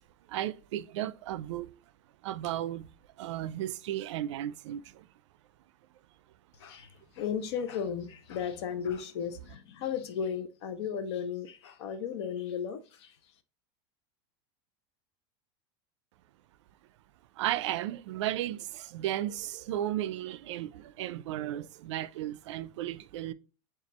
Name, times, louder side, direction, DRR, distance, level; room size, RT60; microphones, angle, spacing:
voice 1, 0.3-1.7 2.2-2.9 3.2-5.1 17.4-23.3, right 13 dB, 85° right, 0.4 m, -34 dB
voice 2, 6.6-13.2, left 7 dB, 70° left, 0.7 m, -35 dB
7.0 x 2.4 x 3.0 m
supercardioid pair, 180°, 15 cm